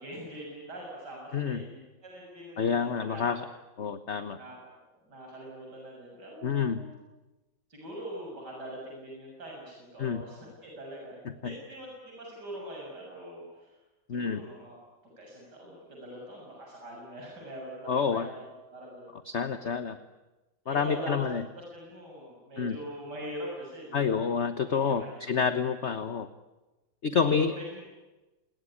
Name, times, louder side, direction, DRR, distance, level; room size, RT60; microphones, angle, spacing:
voice 1, 0.0-3.4 4.4-4.8 5.0-6.9 7.7-13.8 14.1-14.8 15.2-18.5 18.7-19.1 20.7-21.2 21.5-25.3 27.1-27.8, right 1 dB, 60° right, -2 dB, 7.6 m, -43 dB
voice 2, 1.3-1.6 2.6-3.5 3.8-4.4 6.4-6.8 10.0-10.2 11.2-11.5 14.1-14.4 17.9-18.3 19.2-20.0 20.7-21.4 22.6-22.8 23.9-26.3 27.0-27.5, left 6 dB, 40° left, 11 dB, 1.3 m, -28 dB
27.5 x 21.0 x 10.0 m, 1.1 s
omnidirectional pair, 2.1 m